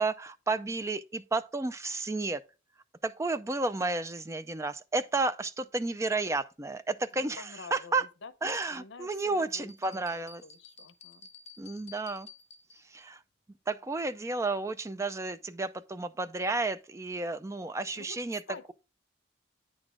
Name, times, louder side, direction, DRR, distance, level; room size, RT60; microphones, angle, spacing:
voice 1, 0.0-2.4 3.0-8.0 8.4-10.4 11.6-12.3 12.8-13.2 13.7-18.4, right 3 dB, 15° right, 0.4 m, -32 dB
voice 2, 7.2-8.3 8.7-11.3 17.9-18.2 18.5-18.7, left 4 dB, 80° left, 0.8 m, -48 dB
sound 1, 9.7-13.0, left 5 dB, 35° left, 0.6 m, -52 dB
9.6 x 4.0 x 4.8 m
head